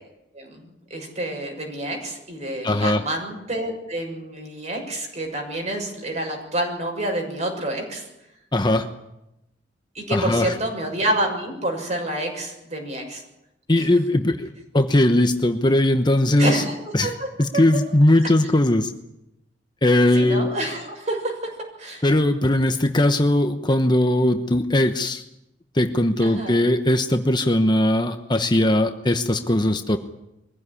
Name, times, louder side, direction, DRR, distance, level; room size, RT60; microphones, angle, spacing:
voice 1, 0.3-8.1 9.9-13.2 13.7-13.9 16.4-17.3 17.5-17.6 18.2-18.3 20.1-21.3 21.8-22.0 26.2-26.6, right 1 dB, 40° right, 2 dB, 6.8 m, -28 dB
voice 2, 2.6-3.0 8.5-8.9 10.1-10.5 13.7-14.5 14.7-16.6 16.9-17.1 17.4-18.9 19.8-20.5 22.0-25.2 25.7-30.0, left 1 dB, 25° left, 7 dB, 1.0 m, -19 dB
23.0 x 16.0 x 10.0 m, 0.88 s
head